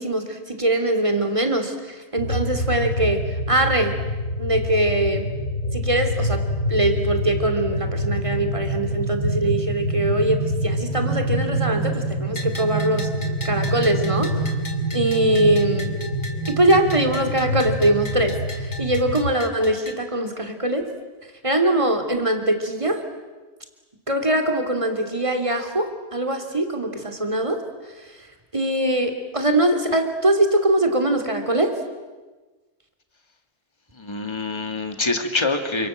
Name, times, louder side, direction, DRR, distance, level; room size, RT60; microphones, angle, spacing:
voice 1, 0.0-4.0 4.4-5.3 5.7-13.1 13.4-14.5 14.9-15.9 16.5-20.9 21.4-23.0 24.1-27.6 28.0-28.3 28.5-31.8, right 1 dB, 20° right, 5 dB, 3.2 m, -22 dB
sound 1, 2.2-19.3, right 1 dB, 85° left, 3.5 m, -26 dB
Bell, 12.4-20.0, left 1 dB, 55° left, 3.2 m, -38 dB
voice 2, 33.9-35.9, left 3 dB, 20° left, 6 dB, 2.2 m, -25 dB
29.0 x 27.0 x 7.5 m, 1.3 s
omnidirectional pair, 1.4 m